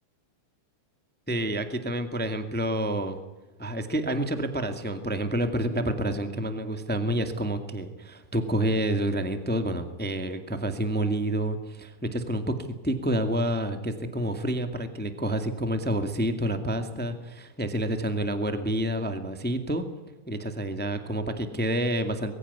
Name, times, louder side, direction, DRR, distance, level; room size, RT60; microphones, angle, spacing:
voice 1, 1.3-3.2 3.6-12.5 12.8-19.8 20.3-22.3, right 1 dB, 5° left, 8 dB, 1.3 m, -28 dB
22.5 x 15.5 x 9.6 m, 1.1 s
omnidirectional pair, 3.7 m